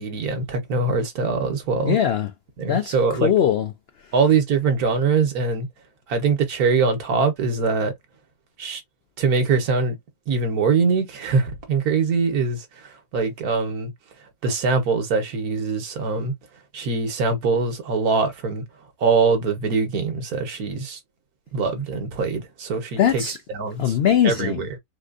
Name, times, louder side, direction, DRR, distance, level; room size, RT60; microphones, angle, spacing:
voice 1, 0.0-2.0 2.6-3.3 4.1-5.7 6.1-7.9 8.6-8.8 9.2-10.0 10.3-13.9 14.4-16.3 16.7-18.6 19.0-21.0 21.5-23.2 23.6-23.9 24.2-24.7, right 4 dB, 75° right, 1.6 m, -22 dB
voice 2, 1.8-2.3 2.7-3.7 4.0-4.1 23.0-23.4 23.8-24.7, left 9 dB, 75° left, 0.5 m, -21 dB
4.2 x 2.4 x 2.4 m
omnidirectional pair, 1.6 m